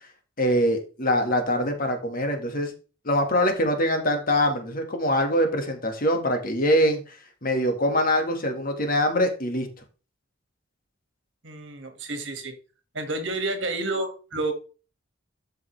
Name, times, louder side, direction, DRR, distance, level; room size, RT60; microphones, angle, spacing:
voice 1, 0.4-2.7 3.1-7.2 7.4-9.7, equal, 45° left, 5 dB, 1.8 m, -23 dB
voice 2, 11.4-12.5 12.9-14.5, right 2 dB, 65° right, 6 dB, 2.0 m, -30 dB
12.5 x 5.5 x 3.3 m, 0.35 s
head